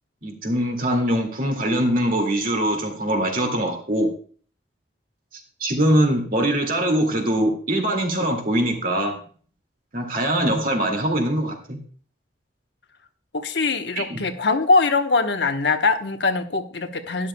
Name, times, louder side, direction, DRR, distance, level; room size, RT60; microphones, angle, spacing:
voice 1, 0.2-4.1 5.6-9.2 9.9-11.8 14.0-14.2, right 1 dB, 50° right, 3 dB, 2.2 m, -22 dB
voice 2, 13.3-17.3, left 3 dB, 80° left, 6 dB, 1.0 m, -22 dB
12.0 x 11.0 x 2.2 m, 0.43 s
head